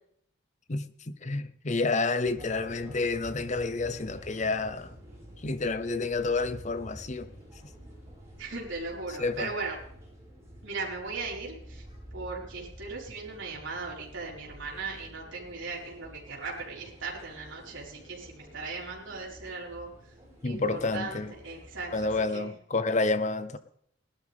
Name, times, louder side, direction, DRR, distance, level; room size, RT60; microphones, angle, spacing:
voice 1, 0.7-4.9 5.4-7.3 9.2-9.5 20.4-21.3 21.9-23.6, left 3 dB, 35° left, 0.7 m, -29 dB
sound 1, 2.2-22.2, equal, 15° right, 5.4 m, -49 dB
voice 2, 8.4-9.8 10.6-11.9 12.1-19.9 20.4-22.5, right 3 dB, 65° right, 4.4 m, -38 dB
19.0 x 12.0 x 3.5 m
head